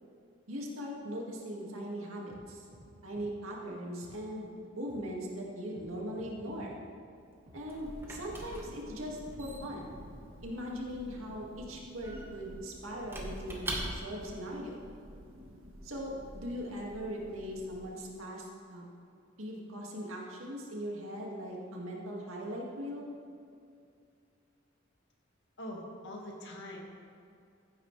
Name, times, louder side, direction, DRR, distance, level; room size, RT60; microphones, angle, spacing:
voice 1, 0.5-2.6 3.0-6.8 7.5-10.0 10.4-14.9 15.8-18.8 19.4-23.0, equal, 90° right, -2 dB, 2.1 m, -40 dB
sound 1, 2.3-2.4 2.7-2.9 3.1-3.3 4.0-4.1 4.9-5.0 5.7-5.9 6.2-6.7 7.5-7.6 8.3-8.5 9.2-9.3 9.6-10.2, equal, 50° right, 2.8 m, -54 dB
Squeak / Wood, 7.2-14.3, right 1 dB, 10° right, 1.4 m, -43 dB
Thunder, 7.4-18.4, equal, 70° right, 1.4 m, -51 dB
voice 2, 25.6-26.8, left 1 dB, 60° left, -1 dB, 2.0 m, -43 dB
15.0 x 9.2 x 3.4 m, 2.5 s
head